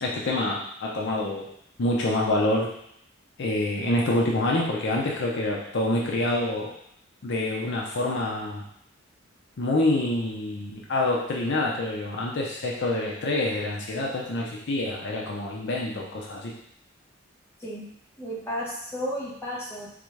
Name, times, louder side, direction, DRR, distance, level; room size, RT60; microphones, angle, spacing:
voice 1, 0.0-1.5 1.8-2.7 3.4-6.7 7.2-8.6 9.6-16.5, left 2 dB, 60° left, -2 dB, 0.6 m, -26 dB
voice 2, 18.2-19.9, equal, 10° left, -6 dB, 1.1 m, -33 dB
3.8 x 3.5 x 3.2 m, 0.72 s
head